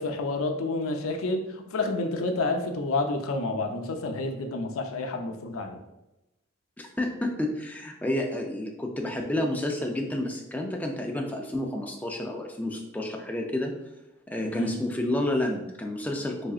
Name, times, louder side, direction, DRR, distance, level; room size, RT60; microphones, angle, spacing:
voice 1, 0.0-5.8 14.4-14.8, left 2 dB, 85° left, 5 dB, 0.5 m, -29 dB
voice 2, 6.8-13.7 14.3-16.5, left 1 dB, 10° left, 1 dB, 0.3 m, -30 dB
3.8 x 3.3 x 2.4 m, 0.95 s
head